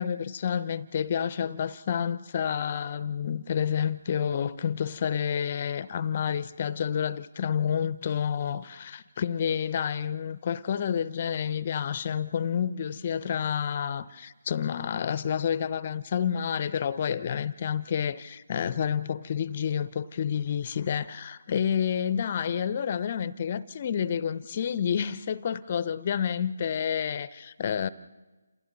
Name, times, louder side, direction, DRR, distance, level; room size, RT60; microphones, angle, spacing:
voice 1, 0.0-27.9, left 8 dB, 35° left, 0.8 m, -29 dB
29.5 x 27.5 x 4.1 m
figure-of-eight pair, 150°, 0 cm